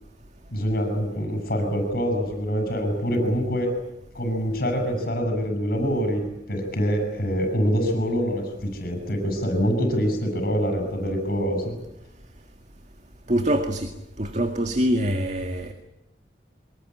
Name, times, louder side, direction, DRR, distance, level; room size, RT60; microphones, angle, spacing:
voice 1, 0.5-3.8 4.1-6.2 6.5-11.8, equal, 55° left, 5 dB, 7.7 m, -25 dB
voice 2, 13.3-13.9 14.2-15.7, equal, 40° right, 6 dB, 2.0 m, -24 dB
24.5 x 20.5 x 9.9 m, 0.89 s
head